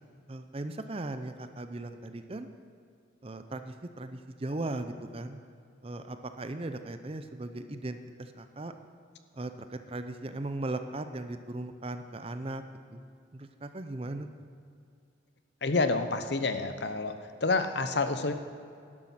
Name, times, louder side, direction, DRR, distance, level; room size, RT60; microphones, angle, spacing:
voice 1, 0.3-2.5 3.2-5.4 5.8-8.7 9.3-12.6 12.9-13.0 13.3-14.3, right 2 dB, 30° right, 9 dB, 0.5 m, -38 dB
voice 2, 15.6-17.1 17.4-18.3, left 3 dB, 60° left, 9 dB, 0.7 m, -28 dB
12.0 x 11.0 x 5.8 m, 2.4 s
head